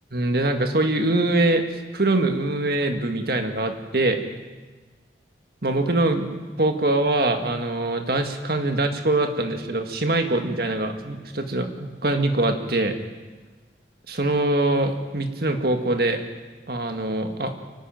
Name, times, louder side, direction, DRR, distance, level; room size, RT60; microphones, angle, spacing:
voice 1, 0.1-4.2 5.6-12.9 14.1-16.2 16.7-17.5, right 2 dB, 60° right, 5 dB, 1.9 m, -23 dB
25.0 x 12.0 x 9.1 m, 1.3 s
head